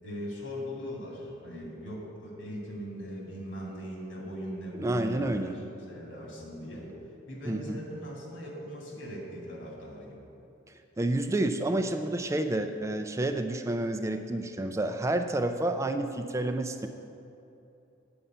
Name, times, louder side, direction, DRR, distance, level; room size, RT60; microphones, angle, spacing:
voice 1, 0.0-5.5 5.9-6.9 7.3-10.2, equal, 80° left, -3 dB, 2.6 m, -40 dB
voice 2, 4.8-5.5 7.5-7.8 11.0-16.9, right 1 dB, 15° right, 6 dB, 0.3 m, -29 dB
8.7 x 5.5 x 7.9 m, 2.8 s
head